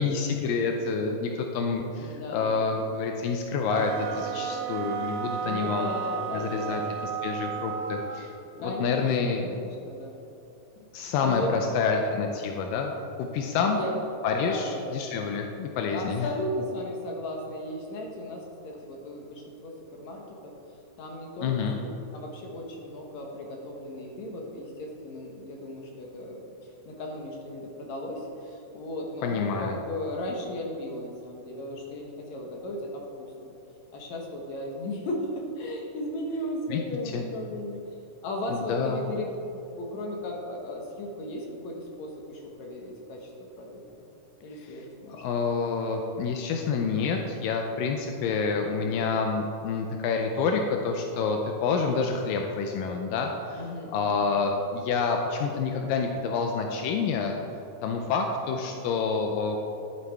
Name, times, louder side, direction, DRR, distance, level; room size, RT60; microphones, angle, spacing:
voice 1, 0.0-5.9 6.3-8.3 8.6-9.5 10.9-13.8 14.2-16.3 21.4-21.8 29.2-29.8 36.7-36.8 37.1-37.2 38.5-39.0 44.7-44.8 45.1-53.6 53.9-57.4 57.8-59.6, left 5 dB, 85° left, 3 dB, 2.3 m, -28 dB
voice 2, 1.9-2.6 5.4-7.0 8.6-10.2 11.2-11.7 13.7-14.0 14.4-15.0 15.9-20.5 21.0-33.5 33.9-37.8 38.2-39.3 39.5-44.1 44.4-45.2 48.6-49.0 53.5-54.3 58.5-58.8, left 1 dB, 65° left, 0 dB, 2.1 m, -36 dB
sound 1, 3.7-8.3, right 7 dB, 85° right, 2.3 m, -33 dB
11.5 x 8.3 x 3.5 m, 3.0 s
omnidirectional pair, 4.0 m